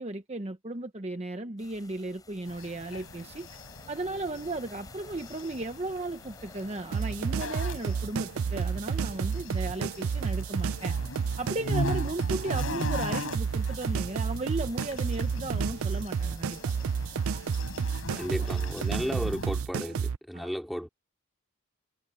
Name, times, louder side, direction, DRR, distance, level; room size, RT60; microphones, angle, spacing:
voice 1, 0.0-3.6 3.9-11.0 11.4-16.6 18.1-18.5 20.3-20.5, right 2 dB, 30° right, 0.9 m, -35 dB
sound 1, 1.6-18.7, left 2 dB, 15° left, 7.1 m, -54 dB
sound 2, 2.5-19.6, left 2 dB, 75° left, 6.5 m, -40 dB
sound 3, 6.9-20.2, right 6 dB, 85° right, 0.5 m, -30 dB
voice 2, 18.2-20.9, equal, ahead, 3.8 m, -34 dB
head